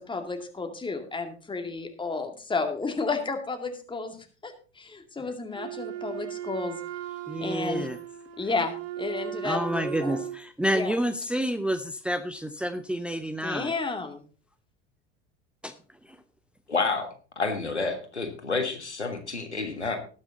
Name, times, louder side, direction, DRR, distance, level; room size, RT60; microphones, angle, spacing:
voice 1, 0.0-4.2 4.4-6.8 7.4-7.9 8.4-10.2 10.7-10.9 13.4-14.2, left 4 dB, 15° left, 5 dB, 2.2 m, -32 dB
Wind instrument woodwind instrument, 5.5-10.4, right 10 dB, 45° right, 1.5 m, -37 dB
voice 2, 7.3-8.0 9.4-13.7 15.6-15.7 16.0-16.2, right 1 dB, 5° right, 9 dB, 0.7 m, -29 dB
voice 3, 16.7-17.1 17.4-20.0, left 4 dB, 85° left, 6 dB, 1.7 m, -29 dB
18.5 x 6.6 x 4.0 m, 0.38 s
figure-of-eight pair, 70°, 33 cm